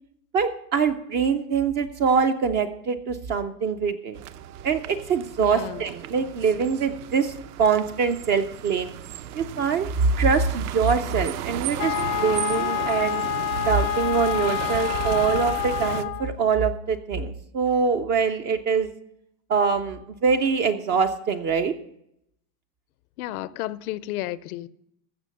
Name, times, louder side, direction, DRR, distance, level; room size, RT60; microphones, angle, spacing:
voice 1, 0.3-4.2 4.6-7.3 7.6-8.9 9.3-9.9 10.2-13.2 13.7-18.9 19.5-21.7, right 5 dB, 25° right, 0.3 m, -24 dB
sound 1, 4.1-16.0, right 11 dB, 65° right, 0.8 m, -35 dB
voice 2, 5.4-5.8 23.2-24.7, left 15 dB, 65° left, 0.6 m, -32 dB
Wind instrument woodwind instrument, 11.8-16.3, left 15 dB, 80° left, 1.1 m, -28 dB
15.0 x 6.2 x 6.4 m
supercardioid pair, 130°, 48 cm